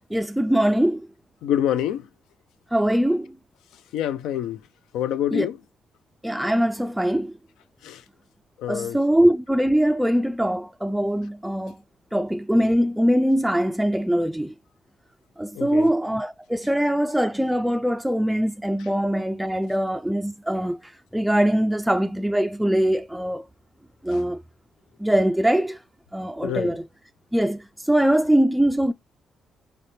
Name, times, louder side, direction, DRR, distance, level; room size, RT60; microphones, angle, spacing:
voice 1, 0.1-1.1 2.7-3.3 5.3-5.5 6.2-7.4 8.7-11.8 12.1-14.5 15.4-23.5 24.0-24.4 25.0-25.8 26.1-26.8 27.3-28.9, equal, 5° right, 0.3 m, -22 dB
voice 2, 1.4-2.1 3.9-4.6 4.9-5.6 7.8-8.0 8.6-9.0 15.5-15.9 18.8-18.9 24.1-24.2 26.4-26.8, left 10 dB, 90° left, 0.5 m, -27 dB
4.2 x 3.4 x 3.3 m
cardioid pair, 90°, 0 cm